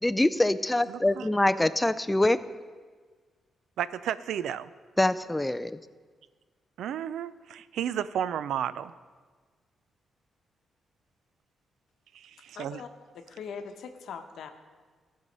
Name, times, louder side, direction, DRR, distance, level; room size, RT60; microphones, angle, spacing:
voice 1, 0.0-2.4 5.0-5.8, left 1 dB, 10° left, 13 dB, 0.3 m, -24 dB
voice 2, 0.9-1.3 3.8-4.7 6.8-8.9 12.1-12.8, right 9 dB, 90° right, 16 dB, 0.3 m, -33 dB
voice 3, 12.5-12.9 13.1-14.5, left 6 dB, 80° left, 6 dB, 0.9 m, -41 dB
14.5 x 5.5 x 5.3 m, 1.5 s
cardioid pair, 95°, 0 cm